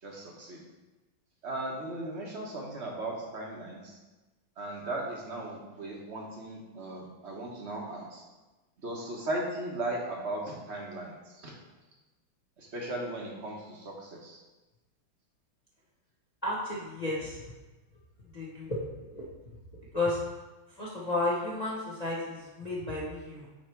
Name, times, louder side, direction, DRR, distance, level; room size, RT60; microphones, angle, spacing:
voice 1, 0.0-0.6 1.4-4.0 4.6-8.2 8.8-11.5 12.6-14.4, right 1 dB, 40° right, -2 dB, 1.1 m, -37 dB
voice 2, 16.4-17.4 18.3-18.8 19.1-19.2 19.9-20.2 20.8-23.5, left 2 dB, 35° left, -6 dB, 0.6 m, -32 dB
9.2 x 3.1 x 4.5 m, 1.1 s
omnidirectional pair, 2.3 m